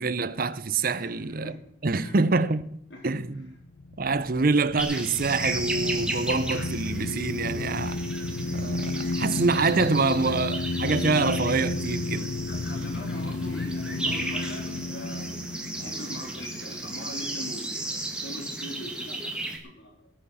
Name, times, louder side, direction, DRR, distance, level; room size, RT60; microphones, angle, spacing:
voice 1, 0.0-1.5 1.8-2.6 3.0-3.5 4.0-8.0 8.5-12.4, right 3 dB, 45° right, 0.7 m, -26 dB
voice 2, 1.0-1.6 1.9-2.2 2.9-3.1 12.5-15.3 15.8-20.1, left 1 dB, 65° left, 3.6 m, -41 dB
sound 1, 3.6-17.2, left 3 dB, 85° left, 0.6 m, -32 dB
sound 2, 4.8-19.6, right 2 dB, 5° right, 1.9 m, -35 dB
19.5 x 8.7 x 5.6 m
head